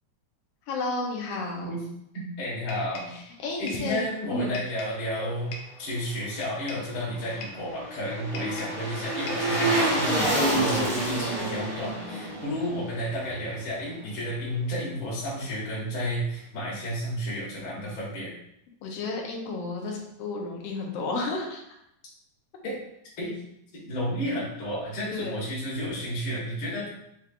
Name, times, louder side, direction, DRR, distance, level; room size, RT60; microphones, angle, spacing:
voice 1, 0.7-1.8 3.1-4.0 4.3-4.5 10.1-10.3 18.8-21.6 25.1-25.4, left 3 dB, 70° left, 0 dB, 1.6 m, -32 dB
voice 2, 2.1-3.1 3.6-5.5 5.8-18.3 22.6-22.8 23.2-23.4 23.7-26.9, equal, 50° left, -6 dB, 2.2 m, -32 dB
sound 1, 2.7-3.2 3.7-3.9 4.5-5.0 5.5-5.8 6.4-6.9 7.4-7.7 8.3-8.8 9.3-9.6, left 2 dB, 85° left, 2.2 m, -41 dB
sound 2, 6.9-14.1 14.4-14.5, right 1 dB, 80° right, 0.5 m, -29 dB
6.8 x 3.1 x 2.5 m, 0.76 s
omnidirectional pair, 3.5 m